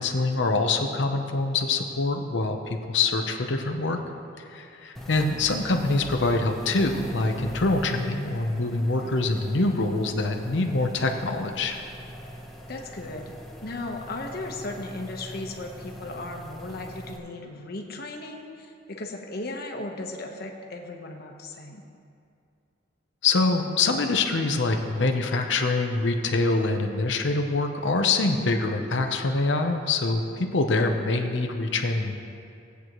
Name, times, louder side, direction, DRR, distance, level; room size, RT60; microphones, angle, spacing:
voice 1, 0.0-4.0 4.5-11.8 23.2-32.2, left 3 dB, 75° left, 4 dB, 0.8 m, -25 dB
sound 1, 4.9-17.2, equal, ahead, 0.9 m, -40 dB
voice 2, 9.0-9.3 12.7-13.3 13.6-21.8 28.4-28.8, left 2 dB, 60° left, 2 dB, 1.1 m, -36 dB
18.5 x 8.1 x 3.1 m, 2.5 s
head